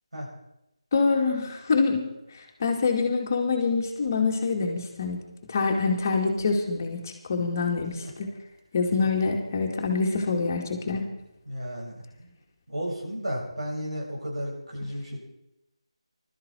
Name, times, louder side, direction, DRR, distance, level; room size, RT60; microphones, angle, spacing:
voice 1, 0.9-2.0 2.6-5.2 5.5-7.0 7.3-7.9 8.2-8.3 8.7-11.0, left 4 dB, 30° left, 1 dB, 2.3 m, -25 dB
voice 2, 11.5-12.4 12.7-15.2, equal, 75° right, -2 dB, 7.5 m, -33 dB
21.0 x 13.0 x 4.6 m, 0.86 s
figure-of-eight pair, 165°, 3 cm